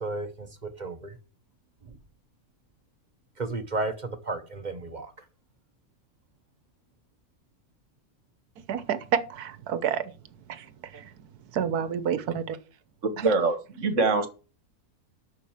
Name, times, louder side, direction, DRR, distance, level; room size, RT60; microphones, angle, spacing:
voice 1, 0.0-1.1 3.4-5.1, right 2 dB, 35° right, 1.0 m, -33 dB
voice 2, 8.7-10.1 10.5-11.1 11.5-12.6 13.2-13.3, right 8 dB, 85° right, 1.4 m, -29 dB
voice 3, 13.0-14.3, right 3 dB, 55° right, 1.5 m, -24 dB
7.4 x 6.2 x 7.2 m
omnidirectional pair, 1.6 m